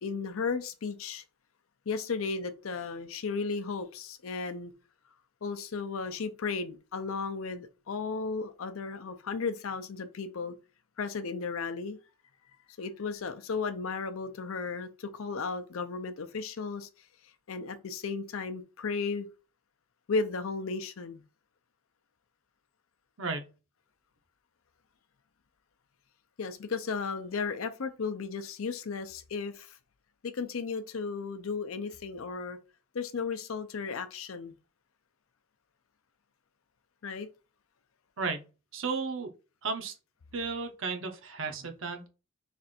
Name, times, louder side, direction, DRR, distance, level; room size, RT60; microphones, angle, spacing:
voice 1, 0.0-1.2 1.9-4.7 5.4-10.5 11.0-12.0 12.8-16.9 17.5-19.3 20.1-21.2 26.4-29.8 30.2-32.6 32.9-34.5 37.0-37.3, left 4 dB, 75° left, 0.5 m, -34 dB
voice 2, 38.7-39.3 39.6-39.9 40.3-42.1, right 4 dB, 65° right, 0.8 m, -34 dB
3.3 x 2.5 x 4.1 m
head